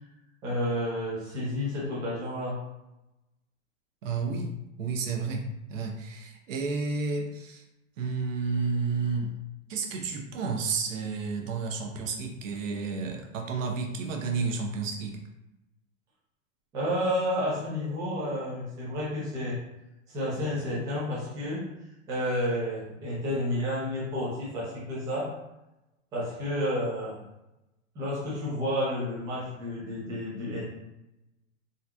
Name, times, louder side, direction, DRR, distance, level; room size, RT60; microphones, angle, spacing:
voice 1, 0.4-2.6 16.7-19.6 20.1-21.6 22.1-25.3 26.1-27.2 27.9-30.6, equal, 10° right, -8 dB, 0.5 m, -30 dB
voice 2, 4.0-7.6 8.0-9.4 9.7-15.2, right 4 dB, 75° right, 2 dB, 0.8 m, -31 dB
3.7 x 2.8 x 2.3 m, 0.93 s
supercardioid pair, 175°, 39 cm